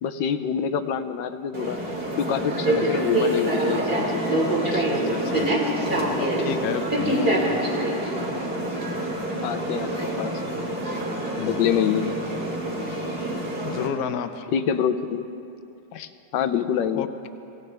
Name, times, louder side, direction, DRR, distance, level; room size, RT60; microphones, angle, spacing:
voice 1, 0.0-1.8 2.2-4.2 4.6-4.9 9.4-9.9 10.2-10.3 11.5-12.1 14.5-15.2 15.9-17.1, left 8 dB, 85° left, 9 dB, 1.4 m, -26 dB
sound 1, 1.5-13.9, right 1 dB, 30° right, 2.4 m, -26 dB
voice 2, 4.9-5.5 5.9-7.4 8.3-8.4 11.4-11.7 13.6-14.5 16.9-17.1, left 8 dB, 65° left, 9 dB, 1.1 m, -32 dB
26.0 x 16.5 x 3.4 m, 2.7 s
omnidirectional pair, 1.9 m